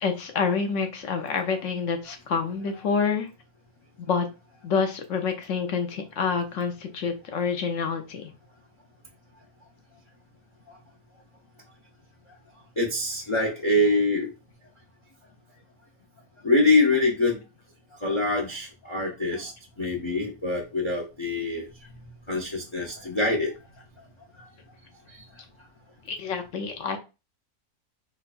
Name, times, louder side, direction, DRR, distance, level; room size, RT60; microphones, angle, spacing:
voice 1, 0.0-3.3 4.1-4.3 4.6-8.3 26.1-27.0, left 5 dB, 65° left, 6 dB, 0.8 m, -27 dB
voice 2, 12.8-14.3 16.4-17.4 18.0-19.5 19.8-21.7 22.3-23.5, left 2 dB, 45° left, 1 dB, 0.4 m, -24 dB
4.5 x 2.2 x 2.4 m, 0.28 s
omnidirectional pair, 1.5 m